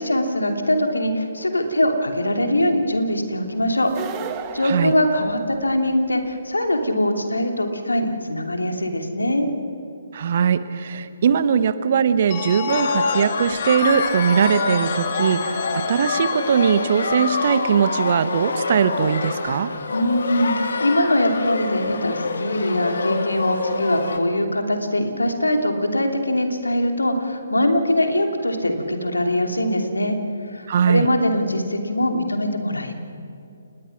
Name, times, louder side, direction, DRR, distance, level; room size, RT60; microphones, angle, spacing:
voice 1, 0.0-3.9 4.5-9.5 19.9-30.2 30.5-32.9, left 1 dB, 80° left, 4 dB, 2.9 m, -22 dB
sound 1, 3.8-5.9, right 7 dB, 25° right, 1.5 m, -34 dB
voice 2, 10.1-19.7 30.7-31.1, right 7 dB, 45° right, 13 dB, 1.1 m, -20 dB
Telephone, 12.3-18.1, left 8 dB, 30° left, 1.8 m, -33 dB
sound 2, 12.7-24.2, left 4 dB, 60° left, 1.9 m, -26 dB
29.5 x 20.0 x 6.0 m, 2.6 s
figure-of-eight pair, 135°, 0 cm